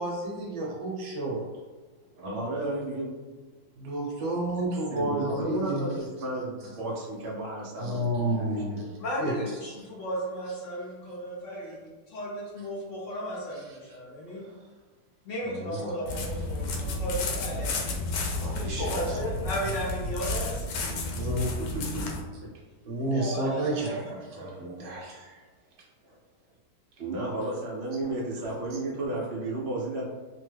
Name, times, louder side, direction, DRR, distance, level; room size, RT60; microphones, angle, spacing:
voice 1, 0.0-1.5 3.8-5.9 7.8-9.3 11.7-11.8 13.5-13.8 14.4-14.5 15.4-15.9 18.4-19.2 21.1-21.5 22.8-25.4, right 1 dB, 65° right, -2 dB, 1.0 m, -31 dB
voice 2, 2.2-3.1 4.9-8.1 8.4-8.8 21.6-22.1 26.1-26.2 27.0-30.0, right 2 dB, 85° right, -3 dB, 0.5 m, -33 dB
voice 3, 9.0-14.4 15.2-18.0 18.5-20.6 22.9-24.6, equal, 60° left, -5 dB, 0.9 m, -35 dB
sound 1, 16.1-22.2, left 2 dB, 80° left, 1.2 m, -32 dB
3.0 x 2.2 x 3.2 m, 1.3 s
omnidirectional pair, 1.9 m